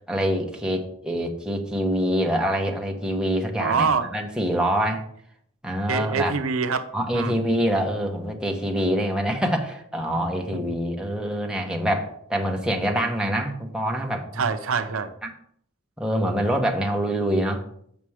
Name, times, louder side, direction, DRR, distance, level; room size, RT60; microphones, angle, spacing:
voice 1, 0.1-5.0 5.6-6.3 6.9-14.4 15.2-15.3 16.0-17.6, equal, 5° right, 1 dB, 1.0 m, -25 dB
voice 2, 3.6-4.1 5.9-7.4 10.5-10.6 14.4-15.1, right 5 dB, 75° right, 9 dB, 0.6 m, -25 dB
7.2 x 5.9 x 4.9 m, 0.67 s
head